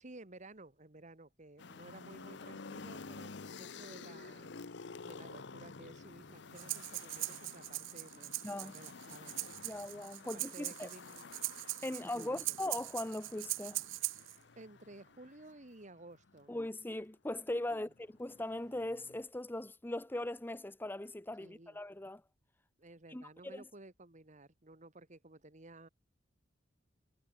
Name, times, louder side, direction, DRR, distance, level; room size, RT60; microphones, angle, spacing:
voice 1, 0.0-4.6 5.0-9.6 10.3-11.3 11.9-12.6 14.6-16.5 17.7-17.9 21.4-21.8 22.8-25.9, right 2 dB, 40° right, 1.9 m, -55 dB
sound 1, 1.6-16.4 17.5-19.2, left 4 dB, 65° left, 0.8 m, -51 dB
Breathing, 6.6-14.4, right 21 dB, 85° right, 0.3 m, -41 dB
voice 2, 8.4-8.8 9.6-10.9 11.8-13.8 16.5-22.2 23.1-23.6, left 1 dB, 10° left, 0.7 m, -40 dB
head